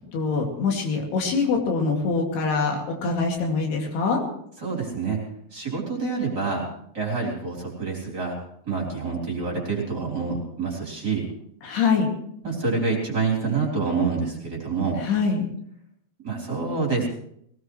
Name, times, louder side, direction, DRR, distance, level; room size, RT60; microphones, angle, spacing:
voice 1, 0.1-4.2 11.6-12.1 15.0-15.5, left 4 dB, 75° left, 1 dB, 4.5 m, -24 dB
voice 2, 4.6-5.2 5.5-6.7 6.9-8.4 8.7-11.3 12.4-15.0 16.2-17.1, right 4 dB, 25° right, -2 dB, 4.1 m, -27 dB
21.0 x 18.5 x 3.2 m, 0.70 s
omnidirectional pair, 4.7 m